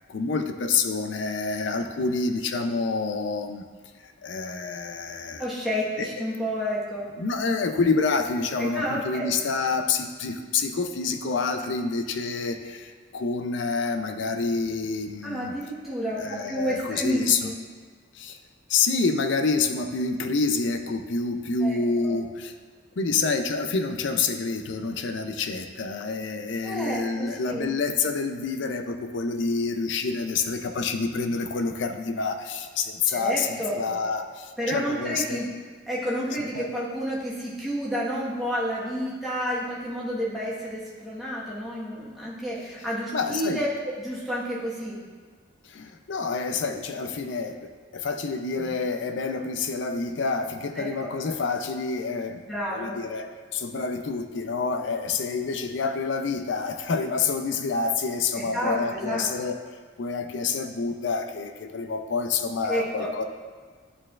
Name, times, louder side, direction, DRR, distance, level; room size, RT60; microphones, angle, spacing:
voice 1, 0.1-3.6 4.0-5.5 6.0-6.2 7.2-15.5 16.1-17.5 18.1-18.4 18.7-22.5 23.0-35.4 36.5-36.7 43.1-43.6 45.7-52.4 52.7-53.3 53.5-59.6 60.0-63.2, left 4 dB, 70° left, 7 dB, 0.5 m, -28 dB
voice 2, 5.4-7.0 8.6-9.3 15.2-17.5 21.6-22.1 26.6-27.7 33.1-33.9 34.6-35.5 35.9-45.0 50.7-51.1 52.4-53.0 58.3-59.2 62.7-63.1, equal, ahead, -8 dB, 1.2 m, -30 dB
11.0 x 4.4 x 2.4 m, 1.5 s
head